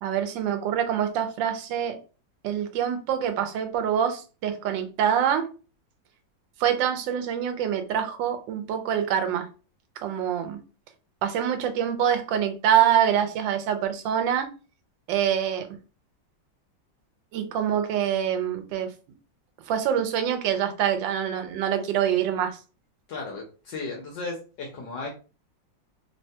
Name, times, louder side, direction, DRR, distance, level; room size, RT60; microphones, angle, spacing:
voice 1, 0.0-2.0 2.4-5.5 6.6-9.5 10.0-10.6 11.2-14.5 15.1-15.7 17.3-18.9 19.7-22.6, right 9 dB, 80° right, 1.3 m, -25 dB
voice 2, 23.1-25.1, left 3 dB, 75° left, 1.3 m, -35 dB
3.4 x 2.1 x 2.7 m
omnidirectional pair, 2.0 m